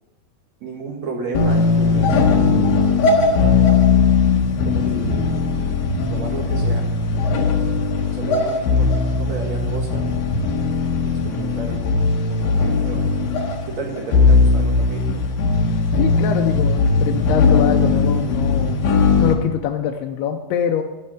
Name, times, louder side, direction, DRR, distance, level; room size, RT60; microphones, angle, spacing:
voice 1, 0.6-3.1 4.6-5.7 6.1-6.8 8.1-10.1 11.0-11.9 12.3-13.1 13.7-15.1, right 3 dB, 50° right, 0 dB, 2.5 m, -32 dB
sound 1, 1.3-19.3, left 4 dB, 70° left, 3.0 m, -18 dB
voice 2, 16.0-18.8 19.2-20.8, left 9 dB, 90° left, 3 dB, 2.7 m, -24 dB
14.0 x 5.5 x 8.9 m, 1.1 s
omnidirectional pair, 4.5 m